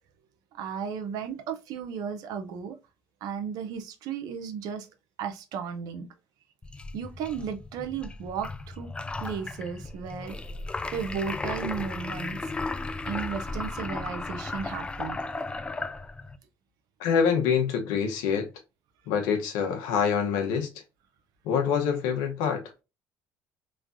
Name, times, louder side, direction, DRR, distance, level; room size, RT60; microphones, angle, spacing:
voice 1, 0.6-2.8 3.2-4.9 5.2-6.1 6.9-8.9 9.2-10.4 10.9-12.4 13.1-15.2, right 7 dB, 70° right, 0.6 m, -34 dB
sound 1, 6.6-16.4, left 3 dB, 15° left, 0.3 m, -35 dB
voice 2, 17.0-18.5 19.1-20.7 21.4-22.6, left 7 dB, 85° left, 0.9 m, -25 dB
3.2 x 2.2 x 2.5 m
supercardioid pair, 90°, 7 cm